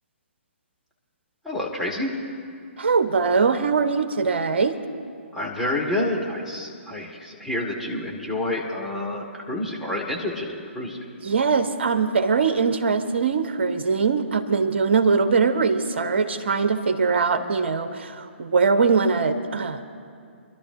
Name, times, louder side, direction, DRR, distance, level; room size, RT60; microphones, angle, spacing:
voice 1, 1.4-2.1 5.3-10.5 10.7-11.0, left 1 dB, ahead, -4 dB, 1.7 m, -28 dB
voice 2, 2.8-4.8 11.2-19.8, right 5 dB, 60° right, 9 dB, 1.0 m, -22 dB
25.0 x 12.0 x 2.6 m, 2.3 s
figure-of-eight pair, 130°, 7 cm